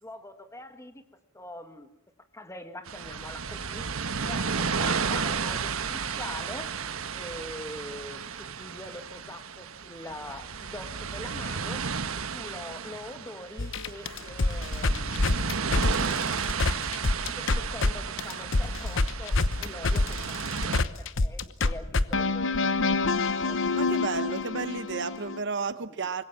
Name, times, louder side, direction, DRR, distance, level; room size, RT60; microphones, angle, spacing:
voice 1, 0.0-1.0 1.3-1.9 2.3-3.9 4.3-6.7 7.1-11.8 12.2-15.5 17.4-23.0 23.4-23.6 25.8-26.0, left 1 dB, 15° left, 8 dB, 2.0 m, -43 dB
sound 1, 2.9-20.8, right 5 dB, 90° right, 1.2 m, -33 dB
sound 2, 13.6-17.9 18.2-25.4, left 3 dB, 65° left, 1.0 m, -26 dB
voice 2, 23.7-26.2, right 4 dB, 60° right, 13 dB, 1.0 m, -32 dB
25.0 x 21.5 x 7.4 m, 0.80 s
head